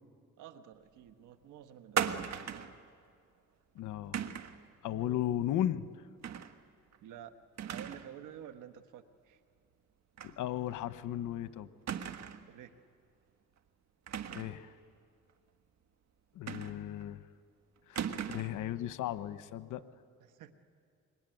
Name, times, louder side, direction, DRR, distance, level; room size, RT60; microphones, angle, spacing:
voice 1, 0.4-2.7 7.0-7.4 7.7-9.4 12.4-12.8 20.2-20.5, right 10 dB, 85° right, 8 dB, 1.5 m, -51 dB
sound 1, 2.0-2.8 4.1-4.6 6.2-6.5 6.9-7.0 7.6-8.1 8.4-8.5 10.2-10.4 10.7-10.8 11.9-12.5 14.1-14.6 16.5-17.0 17.9-18.6, right 8 dB, 60° right, 1.3 m, -37 dB
voice 2, 3.7-4.2 4.8-6.0 10.2-11.7 14.3-14.7 16.3-17.2 17.9-19.8, left 12 dB, 80° left, 13 dB, 1.0 m, -36 dB
26.0 x 23.0 x 9.3 m, 2.2 s
cardioid pair, 90°, 30 cm